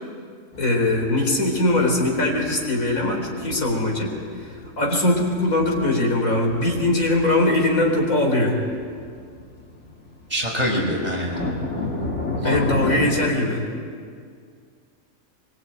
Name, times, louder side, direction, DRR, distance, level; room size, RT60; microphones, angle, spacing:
sound 1, 0.5-13.3, left 2 dB, 55° left, 3.0 m, -33 dB
voice 1, 0.6-8.6 12.4-13.7, left 2 dB, 80° left, 1 dB, 4.6 m, -21 dB
voice 2, 10.3-11.4 12.4-12.7, equal, 30° right, -1 dB, 5.7 m, -24 dB
23.5 x 22.5 x 9.3 m, 2.1 s
omnidirectional pair, 1.4 m